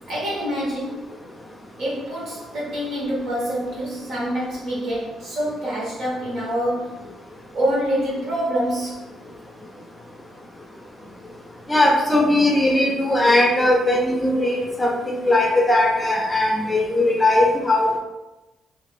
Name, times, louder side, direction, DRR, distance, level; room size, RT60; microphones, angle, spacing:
voice 1, 0.1-1.1 1.8-7.0 7.5-9.1, equal, 65° right, -6 dB, 1.4 m, -26 dB
voice 2, 11.7-18.0, left 1 dB, 15° left, 0 dB, 0.6 m, -19 dB
2.6 x 2.4 x 3.3 m, 1.0 s
cardioid pair, 90°, 0 cm